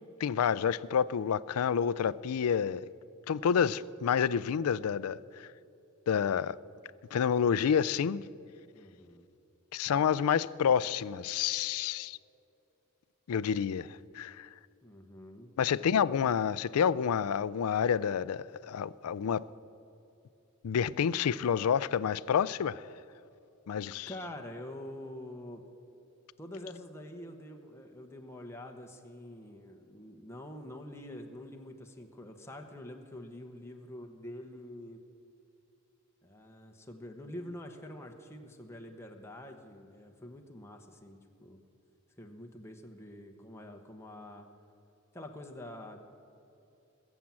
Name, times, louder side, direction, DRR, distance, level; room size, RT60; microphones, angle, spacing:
voice 1, 0.2-2.8 3.3-5.5 6.1-6.6 7.1-8.2 9.7-12.2 13.3-14.5 15.6-19.4 20.6-22.8 23.7-24.1, left 7 dB, 85° left, 0.4 m, -29 dB
voice 2, 8.7-9.3 14.8-15.5 24.0-25.6 26.4-35.0 36.2-41.6 42.2-44.5 45.1-46.0, left 1 dB, 10° left, 1.0 m, -46 dB
21.0 x 7.3 x 7.5 m
head